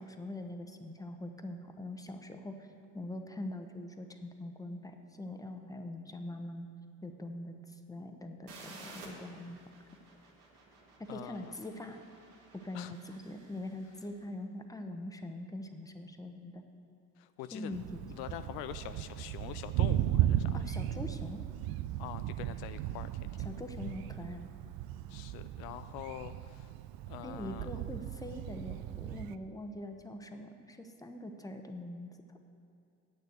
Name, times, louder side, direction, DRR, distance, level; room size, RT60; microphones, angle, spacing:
voice 1, 0.0-2.7 2.9-6.7 7.0-9.6 11.0-12.0 12.5-16.6 17.5-18.0 20.5-21.4 23.4-24.5 27.2-32.4, left 1 dB, 10° left, 5 dB, 1.0 m, -43 dB
sound 1, 8.5-14.1, right 3 dB, 85° right, 1.8 m, -54 dB
voice 2, 11.1-11.5 12.7-12.9 17.2-17.8 18.1-20.6 22.0-23.5 25.1-26.7 27.1-27.7, left 12 dB, 70° left, 11 dB, 0.5 m, -45 dB
Thunder, 17.7-29.4, right 12 dB, 65° right, 0.5 m, -36 dB
8.5 x 6.8 x 8.0 m, 2.6 s
hypercardioid pair, 65°, 39 cm